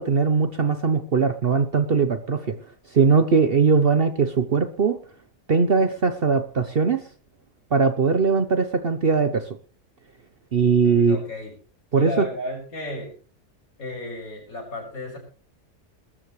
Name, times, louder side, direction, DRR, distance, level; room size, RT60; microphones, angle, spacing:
voice 1, 0.0-2.6 2.9-5.0 5.5-7.0 7.7-9.6 10.5-11.2 11.9-12.3, right 5 dB, 45° right, 10 dB, 0.9 m, -20 dB
voice 2, 10.8-11.5 12.0-13.1 13.8-15.2, left 1 dB, 65° left, 1 dB, 6.5 m, -33 dB
21.0 x 13.5 x 3.2 m, 0.39 s
omnidirectional pair, 1.6 m